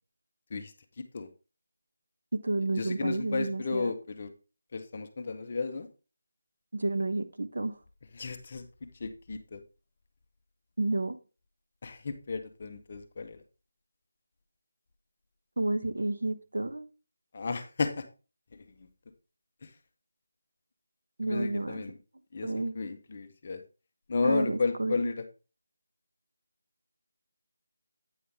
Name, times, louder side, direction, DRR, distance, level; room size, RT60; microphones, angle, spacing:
voice 1, 0.5-1.3 2.7-4.3 4.7-5.9 8.1-9.6 11.8-13.4 17.3-18.1 18.5-18.9 19.6-19.7 21.2-22.0 22.3-22.5 22.7-23.6 24.1-25.2, left 4 dB, 25° left, 7 dB, 0.6 m, -33 dB
voice 2, 2.3-3.9 6.7-7.8 10.8-11.2 15.6-16.9 21.2-21.8 22.4-22.7 24.2-24.9, right 2 dB, 70° right, 9 dB, 0.9 m, -30 dB
8.6 x 5.6 x 3.4 m, 0.33 s
figure-of-eight pair, 180°, 0 cm